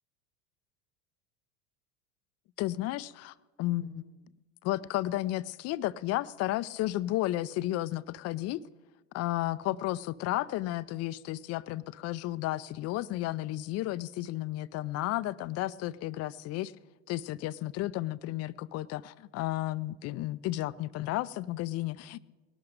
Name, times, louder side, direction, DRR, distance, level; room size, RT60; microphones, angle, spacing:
voice 1, 2.6-4.1 4.6-8.6 9.1-16.7 17.1-22.2, left 16 dB, 45° left, 18 dB, 0.5 m, -33 dB
19.0 x 12.0 x 5.1 m, 1.3 s
hypercardioid pair, 90°, 35 cm